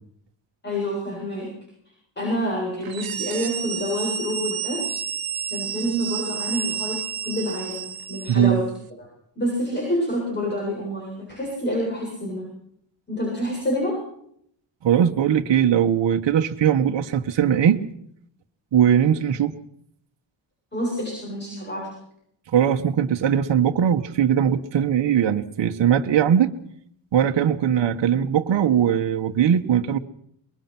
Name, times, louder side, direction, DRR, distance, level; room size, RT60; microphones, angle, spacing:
voice 1, 0.6-1.5 2.2-4.8 5.5-8.6 9.0-9.1 9.4-12.4 13.1-14.0 20.7-21.9, equal, 20° left, -2 dB, 7.9 m, -27 dB
sound 1, 2.8-8.5, right 8 dB, 45° right, 1.7 m, -30 dB
voice 2, 8.3-8.6 14.8-17.8 18.7-19.5 22.5-26.5 27.1-30.0, right 9 dB, 65° right, 4 dB, 1.4 m, -20 dB
24.5 x 22.0 x 6.1 m, 0.70 s
wide cardioid pair, 165°, 47 cm